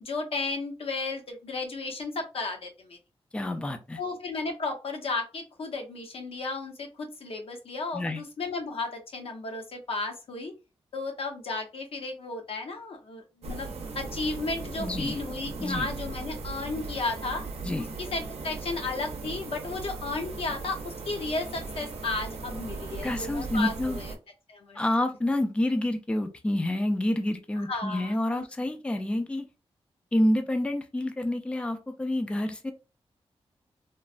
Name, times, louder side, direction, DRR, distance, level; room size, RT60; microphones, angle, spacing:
voice 1, 0.0-3.0 4.0-10.5 10.9-13.7 13.9-17.4 18.0-24.1 24.5-24.8 27.6-28.4, left 3 dB, 70° left, 3 dB, 0.7 m, -34 dB
voice 2, 3.3-4.0 7.9-8.2 14.8-15.2 15.6-15.9 17.6-17.9 23.0-24.0 24.8-29.4 30.1-32.7, left 1 dB, 10° left, 7 dB, 0.3 m, -28 dB
sound 1, 13.4-24.2, right 4 dB, 85° right, 0.5 m, -38 dB
3.0 x 2.1 x 2.4 m, 0.30 s
wide cardioid pair, 140°, 10 cm